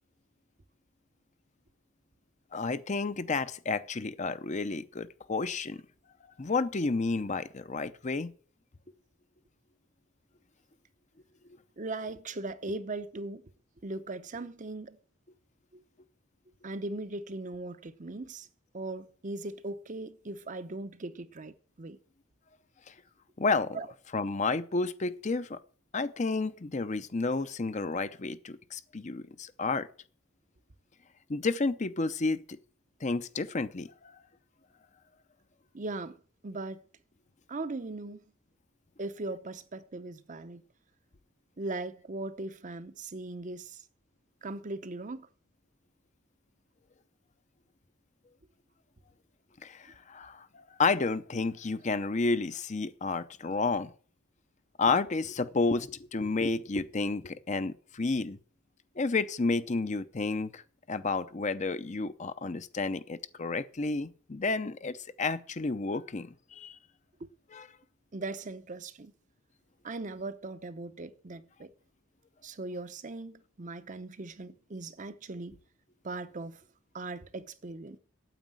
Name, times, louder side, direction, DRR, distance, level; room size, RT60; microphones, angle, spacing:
voice 1, 2.5-5.8 6.4-8.3 12.7-12.8 22.9-23.0 23.4-23.8 24.1-25.6 25.9-29.9 31.3-32.6 33.0-34.2 49.6-53.9 54.8-58.4 59.0-60.6 60.9-66.8 67.5-67.7, left 3 dB, 35° left, 0.6 m, -31 dB
voice 2, 11.8-13.4 13.8-15.0 15.7-15.8 16.6-18.5 18.7-22.0 23.7-23.9 35.7-36.2 36.4-36.8 37.5-38.2 39.0-40.6 41.6-43.8 44.4-45.3 68.1-69.1 69.8-71.7 72.4-75.6 76.0-76.6 76.9-78.0, right 2 dB, 40° right, 0.7 m, -39 dB
9.2 x 8.2 x 7.6 m
head